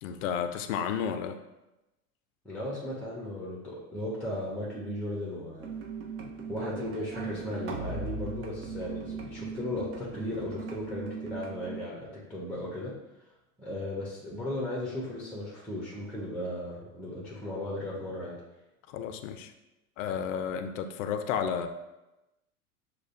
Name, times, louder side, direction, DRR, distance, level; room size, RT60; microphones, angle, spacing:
voice 1, 0.0-1.4 18.9-19.5 20.0-21.7, left 7 dB, 60° left, 9 dB, 0.5 m, -32 dB
voice 2, 2.4-5.7 6.5-12.9 13.6-18.4, left 1 dB, 5° left, -4 dB, 0.9 m, -36 dB
sound 1, 5.6-11.8, right 4 dB, 30° right, 0.5 m, -38 dB
6.4 x 2.2 x 2.6 m, 0.98 s
hypercardioid pair, 95°, 45 cm